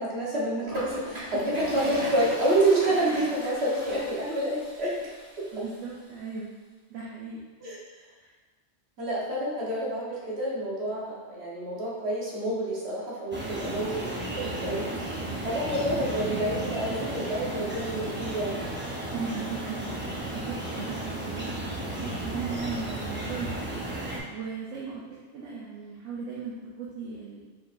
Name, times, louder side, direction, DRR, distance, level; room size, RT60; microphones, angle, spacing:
voice 1, 0.0-5.1 5.4-5.5 7.6-7.8 9.0-14.9 15.4-18.6, right 1 dB, 60° right, -6 dB, 1.4 m, -28 dB
Toilet flush, 0.7-5.7, right 1 dB, 35° right, 1.2 m, -38 dB
voice 2, 5.5-6.5 6.9-7.4 8.2-8.3 15.9-16.2 19.1-23.8 24.3-27.4, right 5 dB, 85° right, -5 dB, 1.0 m, -37 dB
sound 1, 13.3-24.2, right 1 dB, 15° right, 0.5 m, -34 dB
5.0 x 3.7 x 2.5 m, 1.3 s
omnidirectional pair, 1.2 m